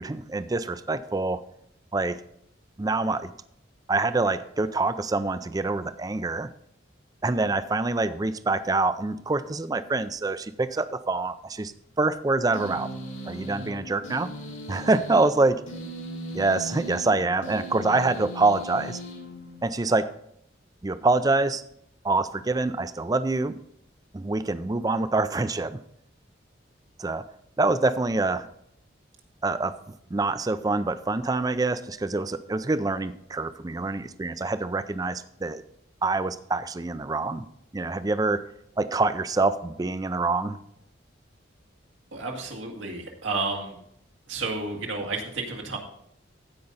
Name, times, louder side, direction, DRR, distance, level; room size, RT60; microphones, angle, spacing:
voice 1, 0.0-1.4 1.9-2.2 2.8-3.3 3.9-6.5 7.2-11.7 12.0-12.9 13.3-14.3 14.7-15.6 16.3-19.0 19.6-20.1 20.8-21.6 22.0-23.6 24.1-25.8 27.0-27.2 27.6-28.5 29.4-29.8 30.1-35.6 36.0-37.5 37.7-38.4 38.8-40.6, right 3 dB, 20° right, 13 dB, 0.4 m, -25 dB
sound 1, 12.5-19.9, equal, 90° left, 3.1 m, -38 dB
voice 2, 42.1-43.8 44.3-45.8, right 3 dB, 90° right, 1 dB, 2.1 m, -31 dB
15.5 x 5.4 x 4.0 m, 0.72 s
head